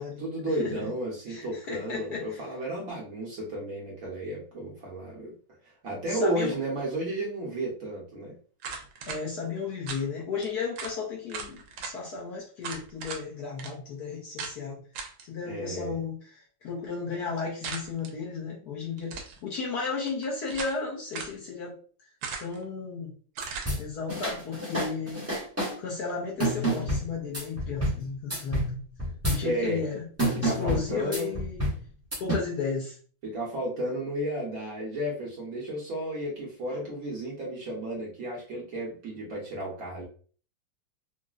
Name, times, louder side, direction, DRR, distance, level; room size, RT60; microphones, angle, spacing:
voice 1, 0.2-5.3 5.6-8.3 15.4-15.9 29.4-29.8 30.3-31.4 33.2-40.0, right 1 dB, 60° right, -4 dB, 1.0 m, -33 dB
voice 2, 1.3-2.4 6.1-6.6 9.1-14.8 15.2-21.8 22.4-23.1 23.8-25.2 25.8-28.8 29.3-30.0 30.4-31.6 32.2-33.0, left 5 dB, 65° left, -4 dB, 1.1 m, -34 dB
sound 1, 8.6-9.2 9.9-10.0 10.4-10.5 10.8-11.0 11.3-11.9 12.6-13.2 13.6-13.7 14.4-14.6 14.9-15.2 17.6-18.1 19.0-19.4 20.1-20.8 21.1-21.4 22.2-22.6 23.3-23.7, right 5 dB, 80° right, 1.3 m, -37 dB
sound 2, 23.4-23.8 24.1-25.7 26.4-28.0 28.3-28.7 29.0-29.4 30.2-31.8 32.1-32.4, equal, 10° right, 0.7 m, -28 dB
3.9 x 2.1 x 2.3 m, 0.42 s
omnidirectional pair, 2.1 m